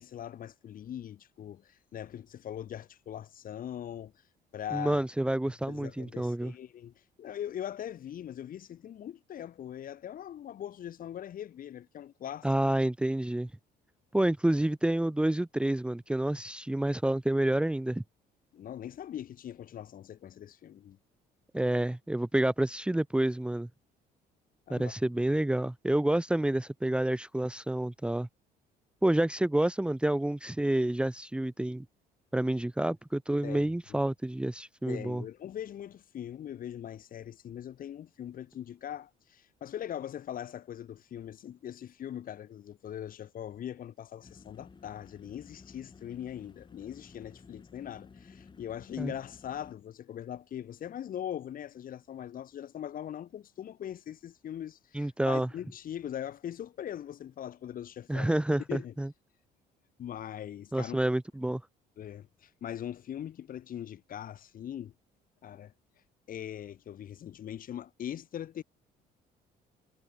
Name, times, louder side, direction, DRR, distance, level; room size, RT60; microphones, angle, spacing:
voice 1, 0.0-4.1 4.5-5.0 5.7-12.5 18.5-21.0 24.7-24.9 33.4-33.7 34.9-58.3 58.7-58.9 60.0-61.0 62.0-64.9 65.4-65.7 66.3-68.6, left 10 dB, 55° left, 7.4 m, -41 dB
voice 2, 4.7-6.5 12.4-13.5 14.1-18.0 21.5-23.7 24.7-28.3 29.0-31.8 32.3-35.2 49.0-49.1 54.9-55.5 58.1-59.1 60.7-61.6, right 1 dB, 5° right, 1.1 m, -29 dB
sound 1, 44.2-49.7, left 5 dB, 25° left, 6.1 m, -54 dB
cardioid pair, 110°, 17 cm